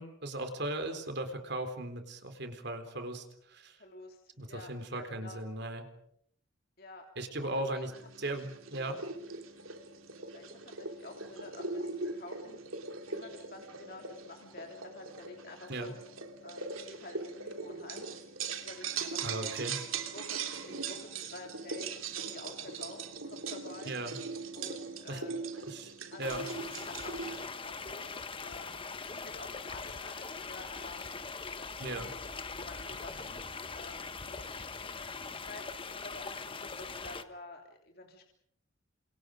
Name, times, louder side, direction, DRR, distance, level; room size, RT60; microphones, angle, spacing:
voice 1, 0.0-3.8 4.4-5.8 7.2-7.9 8.2-9.0 15.7-15.9 19.2-19.8 23.9-24.2 25.1-25.2 25.7-25.9 26.2-26.5 31.8-32.1, right 1 dB, 55° right, 7 dB, 3.9 m, -37 dB
voice 2, 3.8-4.2 4.5-5.4 6.8-7.1 7.7-7.9 10.3-12.6 13.1-15.9 16.4-19.5 20.1-20.4 20.7-23.9 24.5-25.3 26.1-26.4 26.7-28.1 28.4-31.0 31.6-32.1 32.5-33.4 33.7-34.6 35.4-38.3, left 2 dB, 50° left, 2 dB, 3.2 m, -50 dB
sound 1, 7.9-27.5, right 4 dB, 90° right, 3.1 m, -40 dB
sound 2, 26.2-37.2, left 4 dB, 25° left, 1.3 m, -41 dB
30.0 x 27.0 x 5.2 m, 0.72 s
head